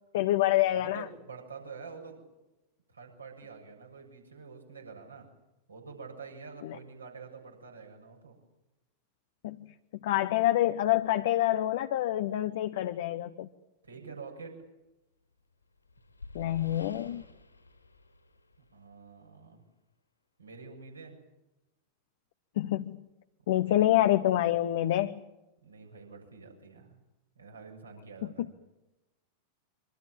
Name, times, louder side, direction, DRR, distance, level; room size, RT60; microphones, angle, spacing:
voice 1, 0.1-1.1 6.6-6.8 9.4-9.6 10.0-13.5 16.3-17.2 22.6-23.0 23.5-25.2 28.4-28.5, left 14 dB, 55° left, 8 dB, 1.1 m, -27 dB
voice 2, 0.7-2.2 2.9-5.3 5.7-8.4 13.8-14.6 18.7-19.6 20.4-21.2 23.5-24.0 25.6-27.0 27.4-28.5, right 5 dB, 75° right, 2 dB, 7.1 m, -47 dB
sound 1, 15.4-19.0, left 2 dB, 80° left, 5.2 m, -50 dB
26.0 x 24.5 x 7.4 m, 0.96 s
figure-of-eight pair, 90°, 0 cm